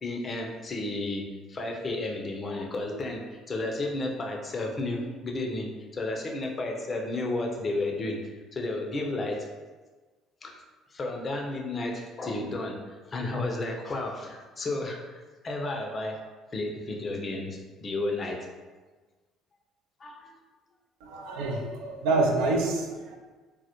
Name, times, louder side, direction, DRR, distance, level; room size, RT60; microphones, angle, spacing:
voice 1, 0.0-8.2 8.5-9.5 10.4-10.6 10.9-16.2 16.5-18.4 20.0-20.4, left 2 dB, 35° left, 1 dB, 0.5 m, -32 dB
voice 2, 21.0-23.2, right 2 dB, 70° right, 1 dB, 0.3 m, -27 dB
2.1 x 2.0 x 2.9 m, 1.3 s
hypercardioid pair, 55°, 0 cm